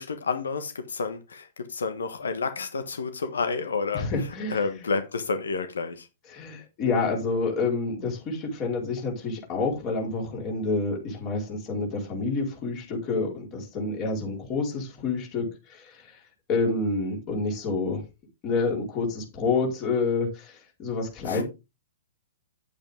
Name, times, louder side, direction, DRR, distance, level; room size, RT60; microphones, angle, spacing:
voice 1, 0.0-6.1 21.3-21.4, left 4 dB, 65° left, 1.4 m, -30 dB
voice 2, 3.9-4.6 6.3-16.2 16.5-18.0 18.4-21.4, left 3 dB, 30° left, 4.6 m, -28 dB
9.7 x 8.7 x 3.6 m
figure-of-eight pair, 110°, 0 cm